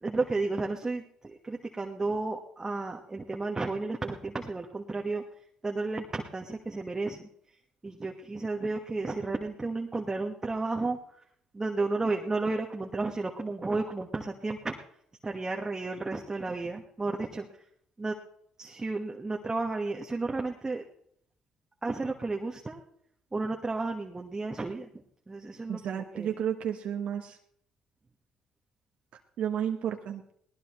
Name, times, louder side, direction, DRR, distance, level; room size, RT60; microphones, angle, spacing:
voice 1, 0.0-5.2 5.6-7.3 7.8-11.0 11.5-14.7 15.2-17.5 18.0-18.1 18.6-20.8 21.8-22.8 23.3-26.4, right 3 dB, 25° right, 2 dB, 1.4 m, -32 dB
voice 2, 25.7-27.4 29.4-30.3, right 9 dB, 70° right, 3 dB, 1.1 m, -32 dB
21.5 x 18.0 x 3.1 m, 0.71 s
supercardioid pair, 70°, 2 cm